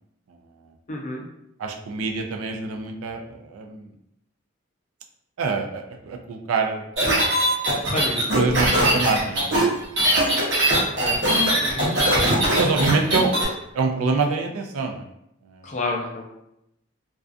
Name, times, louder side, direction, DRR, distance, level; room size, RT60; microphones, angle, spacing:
voice 1, 0.9-1.2 7.9-8.2 10.7-11.2 11.6-11.9 15.6-16.3, left 2 dB, 35° left, -1 dB, 0.4 m, -30 dB
voice 2, 1.6-3.9 5.4-6.8 8.3-9.7 10.0-10.3 12.0-12.1 12.6-13.4 13.7-15.0 15.5-15.7, right 4 dB, 85° right, 3 dB, 0.4 m, -26 dB
sound 1, 7.0-13.4, right 1 dB, 55° right, 0.8 m, -20 dB
2.4 x 2.3 x 2.4 m, 0.80 s
head